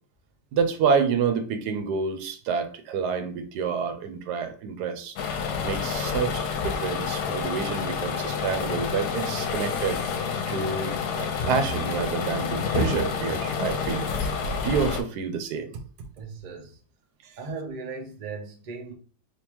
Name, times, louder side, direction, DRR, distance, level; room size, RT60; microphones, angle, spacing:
voice 1, 0.5-5.1 5.6-10.0 10.5-14.0 14.6-15.7, right 6 dB, 85° right, 1.2 m, -28 dB
sound 1, 5.2-15.0, left 5 dB, 85° left, 1.2 m, -28 dB
voice 2, 16.2-16.8 17.4-18.9, right 4 dB, 50° right, 0.5 m, -37 dB
3.5 x 2.8 x 2.9 m
omnidirectional pair, 1.7 m